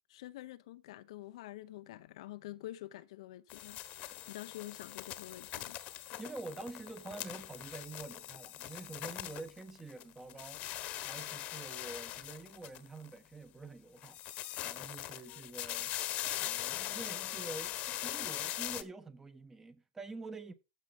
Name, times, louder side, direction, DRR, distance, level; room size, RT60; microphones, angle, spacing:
voice 1, 0.1-5.8, left 15 dB, 60° left, 0.8 m, -47 dB
sound 1, 3.5-10.0 10.3-13.1 14.0-18.8, left 15 dB, 40° left, 1.3 m, -41 dB
voice 2, 6.2-10.7 11.0-14.2 14.6-20.5, right 3 dB, 10° right, 1.3 m, -47 dB
15.0 x 5.0 x 5.3 m
hypercardioid pair, 110°, 3 cm